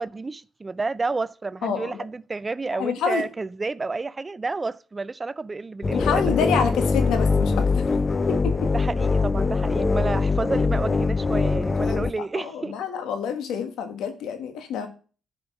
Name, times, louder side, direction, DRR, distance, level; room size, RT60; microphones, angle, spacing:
voice 1, 0.0-6.3 8.7-12.8, right 3 dB, 25° right, 0.4 m, -30 dB
voice 2, 1.6-2.0 2.8-3.3 5.9-7.8 8.3-8.7 11.8-12.1 12.3-14.9, left 6 dB, 85° left, 1.6 m, -27 dB
sound 1, 5.8-12.1, left 4 dB, 30° left, 0.7 m, -22 dB
11.5 x 5.3 x 6.0 m
cardioid pair, 90°, 0 cm